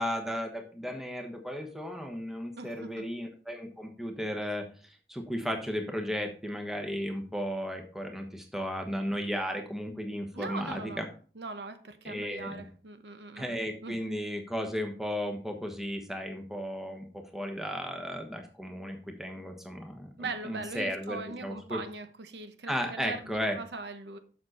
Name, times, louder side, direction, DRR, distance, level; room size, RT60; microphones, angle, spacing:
voice 1, 0.0-11.1 12.0-12.6 13.4-21.8 22.7-23.6, equal, ahead, 1.1 m, -35 dB
voice 2, 2.6-3.1 10.3-11.0 11.4-13.5 13.8-14.0 20.2-24.2, right 3 dB, 75° right, 0.9 m, -40 dB
7.1 x 6.5 x 4.2 m
head